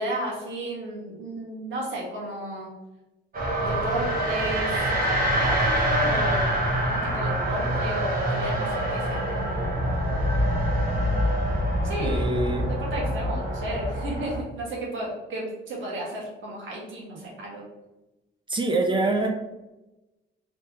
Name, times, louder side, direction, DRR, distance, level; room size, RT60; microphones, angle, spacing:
voice 1, 0.0-2.7 3.6-4.8 5.1-9.8 11.8-12.3 12.7-17.6, right 1 dB, 75° right, -3 dB, 1.4 m, -33 dB
sound 1, 3.3-14.4, right 1 dB, 45° right, 1.2 m, -25 dB
voice 2, 12.0-12.7 17.1-17.2 18.5-19.3, right 2 dB, 25° right, 3 dB, 0.5 m, -25 dB
3.3 x 2.9 x 2.9 m, 1.0 s
cardioid pair, 90°, 20 cm